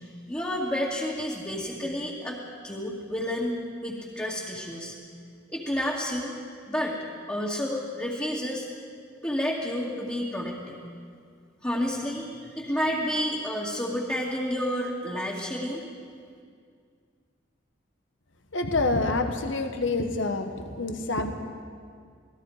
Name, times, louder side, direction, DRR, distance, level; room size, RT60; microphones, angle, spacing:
voice 1, 0.3-2.4 2.6-3.5 3.8-4.9 5.5-6.4 6.7-6.9 7.3-8.7 9.2-10.8 11.6-15.8, equal, 15° left, -6 dB, 2.3 m, -30 dB
voice 2, 18.5-21.3, left 2 dB, 70° left, 6 dB, 1.4 m, -27 dB
28.0 x 19.0 x 5.0 m, 2.1 s
head